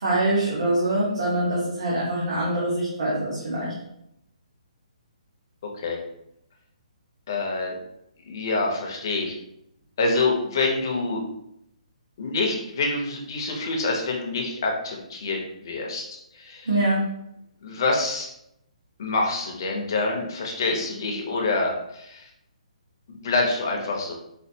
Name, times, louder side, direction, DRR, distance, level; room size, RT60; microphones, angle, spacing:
voice 1, 0.0-3.7 16.7-17.0, right 1 dB, 50° right, -7 dB, 0.9 m, -24 dB
voice 2, 7.3-7.7 8.2-9.3 10.0-11.2 12.2-16.7 17.6-18.3 19.0-22.3 23.1-24.1, left 3 dB, 30° left, 0 dB, 0.6 m, -26 dB
4.2 x 2.3 x 2.7 m, 0.79 s
hypercardioid pair, 180°, 4 cm